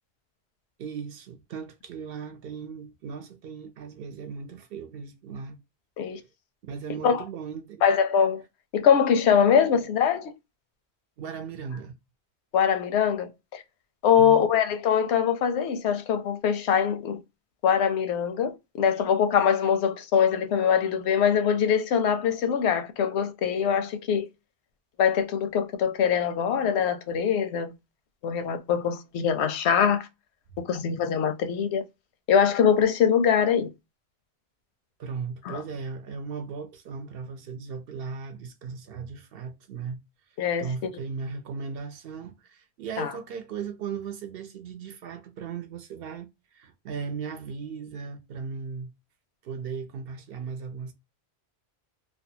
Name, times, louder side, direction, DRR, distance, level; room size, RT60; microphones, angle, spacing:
voice 1, 0.8-5.6 6.6-7.8 11.2-12.0 14.2-14.5 35.0-40.0 40.6-48.9 49.4-50.9, right 5 dB, 70° right, 0.7 m, -37 dB
voice 2, 7.8-8.4 8.7-10.3 12.5-13.6 14.0-17.2 17.6-24.3 25.0-27.7 28.2-30.1 30.7-31.8 32.3-33.7 35.5-35.6 40.4-40.7 43.0-43.1, left 7 dB, 85° left, 0.8 m, -23 dB
2.6 x 2.1 x 2.6 m
omnidirectional pair, 1.1 m